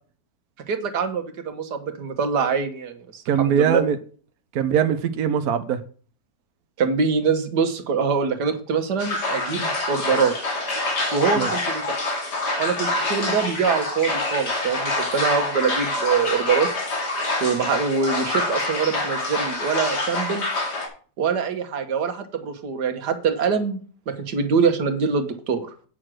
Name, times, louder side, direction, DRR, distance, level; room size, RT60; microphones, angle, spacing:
voice 1, 0.7-3.8 6.8-10.3 11.1-11.8 12.6-16.7 17.1-20.4 21.2-23.8 24.1-25.7, right 5 dB, 90° right, 1.8 m, -24 dB
voice 2, 3.3-4.0 4.5-5.8 11.4-11.5, right 8 dB, 70° right, 1.2 m, -21 dB
sound 1, 9.0-20.9, left 2 dB, 85° left, 3.0 m, -26 dB
8.9 x 6.3 x 6.2 m
omnidirectional pair, 1.7 m